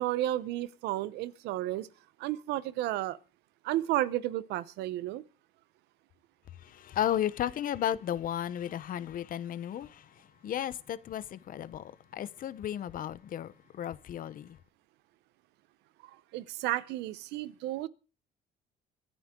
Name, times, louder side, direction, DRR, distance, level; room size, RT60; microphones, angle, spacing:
voice 1, 0.0-1.9 2.2-3.2 3.6-5.2 16.3-17.9, right 15 dB, 90° right, 0.9 m, -32 dB
voice 2, 6.6-14.6, left 10 dB, 55° left, 0.9 m, -34 dB
25.0 x 10.0 x 3.8 m
cardioid pair, 110°, 17 cm